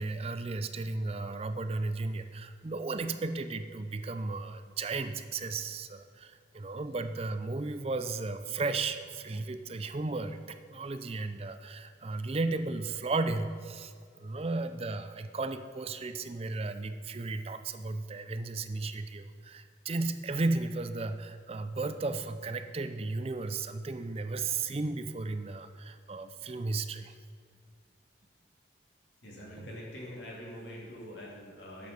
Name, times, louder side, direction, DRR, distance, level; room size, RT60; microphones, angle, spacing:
voice 1, 0.0-27.1, right 3 dB, 30° right, 10 dB, 0.4 m, -34 dB
voice 2, 29.2-31.9, equal, 75° left, -4 dB, 2.6 m, -44 dB
9.2 x 6.8 x 5.3 m, 2.2 s
head